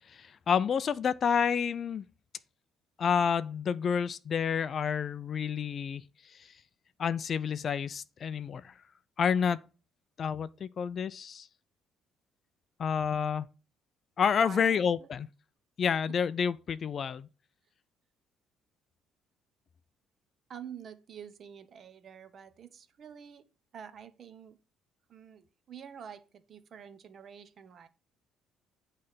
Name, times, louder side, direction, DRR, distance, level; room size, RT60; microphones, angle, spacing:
voice 1, 0.1-2.0 3.0-6.5 7.0-8.7 9.2-9.6 10.2-11.5 12.8-13.5 14.2-15.3 15.8-17.3, left 7 dB, 35° left, 0.3 m, -29 dB
voice 2, 14.4-15.1 20.5-23.5 23.7-24.6 25.1-27.9, right 8 dB, 40° right, 0.7 m, -48 dB
8.6 x 3.2 x 5.6 m
cardioid pair, 155°, 0 cm